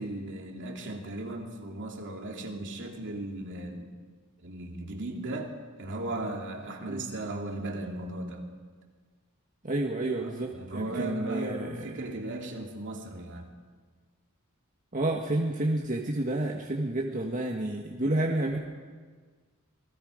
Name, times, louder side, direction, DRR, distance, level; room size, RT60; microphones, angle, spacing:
voice 1, 0.0-3.9 4.4-8.5 10.2-13.5, right 2 dB, 60° right, 1 dB, 2.8 m, -37 dB
voice 2, 9.6-11.7 14.9-18.6, right 1 dB, 40° right, 0 dB, 1.6 m, -30 dB
27.5 x 20.5 x 5.1 m, 1.5 s
head